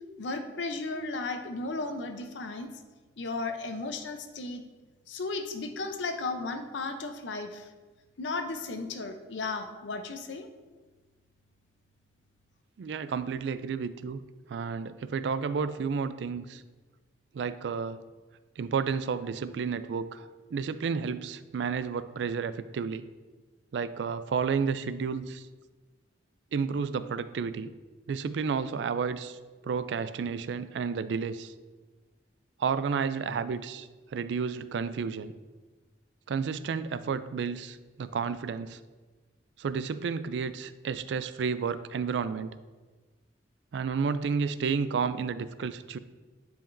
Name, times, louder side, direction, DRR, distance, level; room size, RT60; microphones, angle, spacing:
voice 1, 0.2-2.7 3.2-4.6 5.1-7.7 8.2-10.5, left 3 dB, 90° left, 7 dB, 0.6 m, -35 dB
voice 2, 12.8-14.2 14.5-16.6 17.3-18.0 18.6-23.0 23.7-25.5 26.5-27.7 28.1-29.4 29.6-31.5 32.6-35.3 36.3-38.8 39.6-42.5 43.7-46.0, right 5 dB, 70° right, 14 dB, 0.3 m, -31 dB
10.5 x 4.9 x 2.6 m, 1.3 s
head